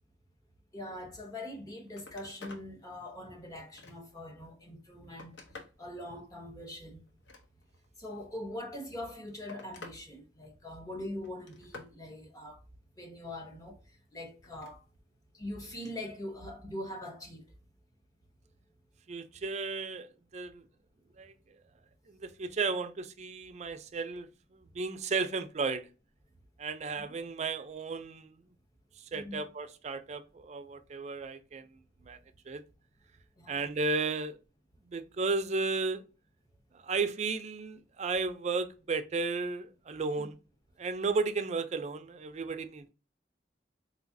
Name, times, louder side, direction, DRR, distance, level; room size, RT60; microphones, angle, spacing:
voice 1, 0.7-5.3 5.8-7.0 8.0-12.6 13.0-13.8 14.1-14.8 15.4-17.4 27.0-27.1 29.1-29.4 33.4-33.6 40.2-40.3, left 1 dB, 20° left, 0.9 m, -42 dB
Telephone, 1.5-1.6 1.9-2.7 3.2-4.2 4.8-5.8 7.1-7.9 8.9-10.0 10.4-10.8 11.2-12.0 14.4-14.8 16.2-16.3, left 3 dB, 85° left, 0.8 m, -51 dB
voice 2, 19.1-20.7 21.2-21.3 22.1-25.9 26.6-28.4 29.0-31.7 32.0-32.2 32.5-32.6 33.5-34.4 34.8-36.0 36.7-40.4 40.8-42.9, right 4 dB, 40° right, 0.4 m, -34 dB
3.9 x 2.8 x 2.6 m
head